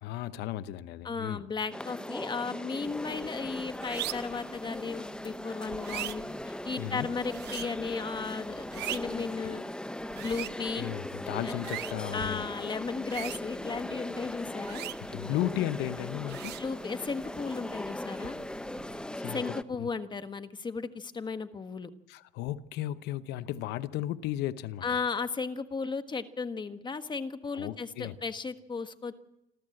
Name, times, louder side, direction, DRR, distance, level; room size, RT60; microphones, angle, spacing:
voice 1, 0.0-1.4 6.8-7.1 10.7-12.5 15.1-16.6 19.2-19.9 22.1-25.0 27.6-28.2, left 13 dB, 90° left, 0.9 m, -35 dB
voice 2, 1.0-9.6 10.1-10.9 11.4-11.7 12.1-14.9 16.6-18.4 19.3-21.9 24.8-29.2, left 4 dB, 25° left, 1.3 m, -35 dB
sound 1, 1.7-19.6, left 1 dB, 5° left, 0.7 m, -39 dB
sound 2, 2.9-19.2, right 15 dB, 80° right, 0.8 m, -44 dB
27.5 x 13.0 x 7.8 m
cardioid pair, 110°, 17 cm